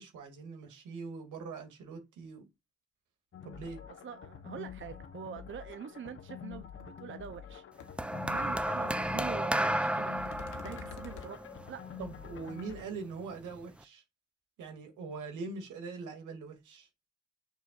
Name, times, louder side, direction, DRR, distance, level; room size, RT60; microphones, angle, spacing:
voice 1, 0.0-2.5 3.4-3.8 8.2-8.5 12.0-14.0 14.6-16.9, right 4 dB, 80° right, 2.6 m, -42 dB
sound 1, 3.3-12.8, left 8 dB, 45° left, 1.0 m, -47 dB
voice 2, 4.0-7.9 8.3-10.2 10.6-11.4 11.7-11.9, right 8 dB, 40° right, 0.7 m, -44 dB
sound 2, 6.8-6.9 7.2-7.5 7.8-7.9 10.3-11.3, left 7 dB, 85° left, 1.2 m, -47 dB
sound 3, 8.0-12.4 13.3-13.6, right 1 dB, 5° right, 0.5 m, -33 dB
6.9 x 6.4 x 2.5 m
cardioid pair, 90°, 30 cm